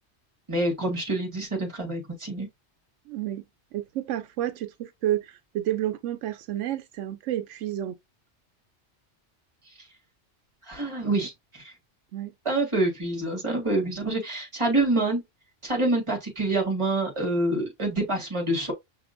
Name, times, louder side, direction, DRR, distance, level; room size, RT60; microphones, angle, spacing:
voice 1, 0.5-2.5 10.7-11.7 12.5-15.2 15.6-18.7, right 2 dB, 25° right, 1.7 m, -26 dB
voice 2, 3.1-3.4 3.7-8.0 12.1-12.3, right 12 dB, 90° right, 0.9 m, -30 dB
5.8 x 2.8 x 2.5 m
omnidirectional pair, 1.2 m